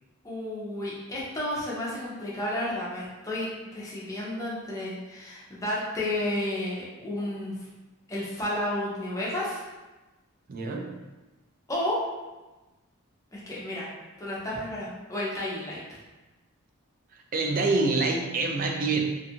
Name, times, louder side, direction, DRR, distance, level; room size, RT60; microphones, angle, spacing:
voice 1, 0.2-7.6 8.1-9.6 11.7-12.0 13.3-13.9 14.2-16.0, left 1 dB, 15° left, -7 dB, 0.5 m, -32 dB
voice 2, 10.5-10.9 17.3-19.0, right 3 dB, 40° right, 2 dB, 0.3 m, -26 dB
2.5 x 2.4 x 2.8 m, 1.1 s
head